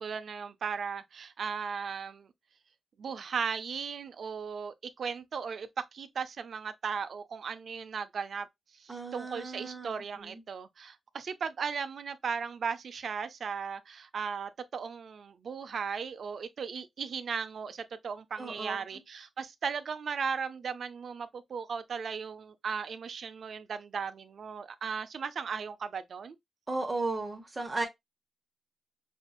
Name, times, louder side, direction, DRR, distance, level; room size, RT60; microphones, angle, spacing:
voice 1, 0.0-2.3 3.0-8.5 8.7-26.4, right 6 dB, 65° right, 0.6 m, -37 dB
voice 2, 8.9-10.4 18.4-18.8 26.7-27.9, right 3 dB, 30° right, 1.2 m, -35 dB
5.6 x 2.7 x 2.4 m
cardioid pair, 90°, 0 cm